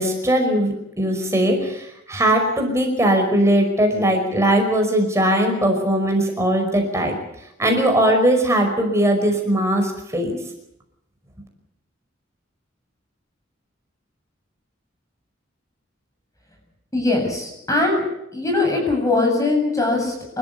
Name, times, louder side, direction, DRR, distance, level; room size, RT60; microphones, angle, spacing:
voice 1, 0.0-7.2 7.6-10.4, right 1 dB, 15° right, 2 dB, 5.3 m, -19 dB
voice 2, 16.9-18.0 18.3-20.4, left 2 dB, 20° left, 2 dB, 7.8 m, -21 dB
28.5 x 14.0 x 8.3 m, 0.83 s
head